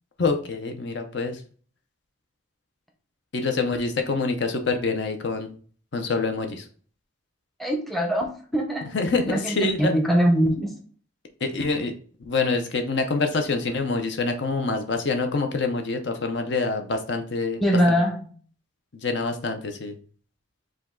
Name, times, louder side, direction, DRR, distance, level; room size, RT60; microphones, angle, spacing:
voice 1, 0.2-1.4 3.3-5.5 5.9-6.7 8.9-9.9 11.4-11.9 12.2-18.0 18.9-19.9, left 3 dB, 60° left, 5 dB, 0.6 m, -26 dB
voice 2, 7.6-9.0 9.3-10.8 17.6-18.2, equal, ahead, 2 dB, 0.6 m, -22 dB
5.1 x 2.3 x 3.7 m, 0.43 s
head